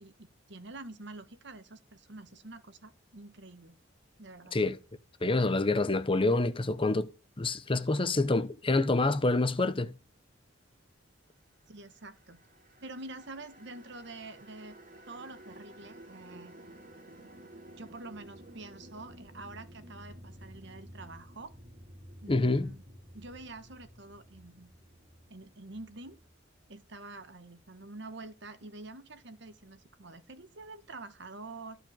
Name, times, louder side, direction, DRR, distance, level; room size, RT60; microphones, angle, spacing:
voice 1, 0.0-3.8 4.2-4.6 11.7-12.4 12.8-14.8 15.1-16.5 17.7-21.6 22.2-22.8 23.1-24.7 25.3-26.2 26.7-31.8, right 2 dB, 65° right, 1.5 m, -47 dB
voice 2, 5.2-7.1 7.4-9.9 22.3-22.7, left 2 dB, 30° left, 0.9 m, -27 dB
sound 1, 11.8-27.0, right 1 dB, 45° right, 2.6 m, -53 dB
14.0 x 5.0 x 9.0 m
head